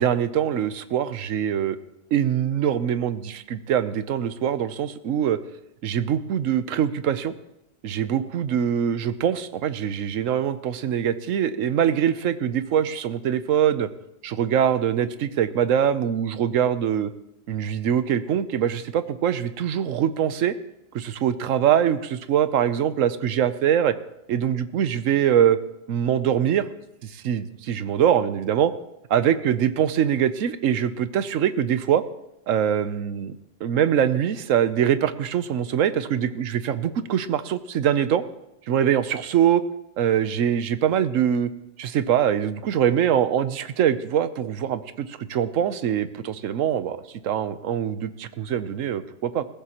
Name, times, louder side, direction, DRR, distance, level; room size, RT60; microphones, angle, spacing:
voice 1, 0.0-1.8 2.1-5.4 5.8-7.3 7.8-13.9 14.2-17.1 17.5-20.5 20.9-23.9 24.3-25.6 25.9-26.6 27.0-28.7 29.1-32.0 32.5-38.2 38.7-39.6 40.0-41.5 41.8-47.0 47.2-49.4, right 9 dB, 80° right, 12 dB, 1.1 m, -23 dB
20.0 x 15.5 x 3.0 m, 0.87 s
omnidirectional pair, 1.3 m